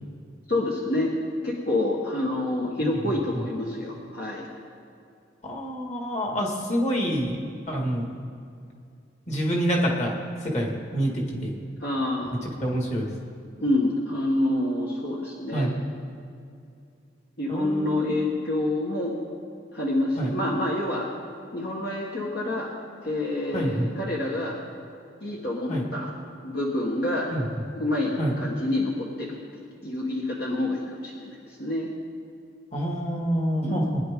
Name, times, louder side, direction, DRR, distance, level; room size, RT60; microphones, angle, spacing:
voice 1, 0.5-1.1 1.4-4.5 11.8-12.4 13.6-15.7 17.4-19.1 19.7-21.1 21.5-22.7 23.0-24.6 25.2-26.1 26.4-27.3 27.7-31.9 33.6-33.9, left 1 dB, 60° left, -3 dB, 1.5 m, -27 dB
voice 2, 5.4-7.4 7.7-8.1 9.3-10.2 10.4-11.5 12.6-13.1 15.5-15.7 17.5-18.0 20.2-20.3 23.5-23.9 25.7-25.8 27.3-27.4 28.2-28.3 32.7-34.0, equal, 40° left, -1 dB, 2.1 m, -27 dB
21.0 x 10.5 x 3.8 m, 2.4 s
head